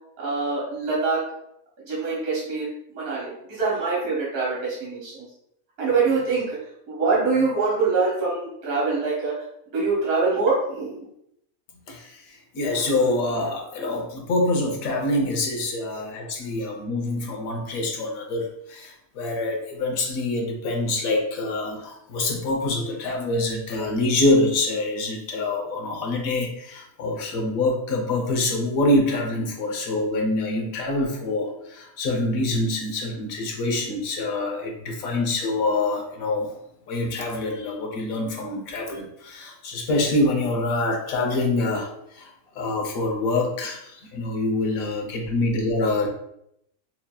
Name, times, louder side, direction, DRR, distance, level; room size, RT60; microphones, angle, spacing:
voice 1, 0.2-1.2 1.9-5.2 5.8-6.6 6.9-9.3 9.7-11.0, right 4 dB, 70° right, -6 dB, 1.7 m, -24 dB
voice 2, 12.5-36.5 36.9-41.9 42.2-42.3 42.6-46.1, left 2 dB, 70° left, 2 dB, 1.2 m, -25 dB
5.7 x 2.7 x 2.2 m, 0.77 s
omnidirectional pair, 1.6 m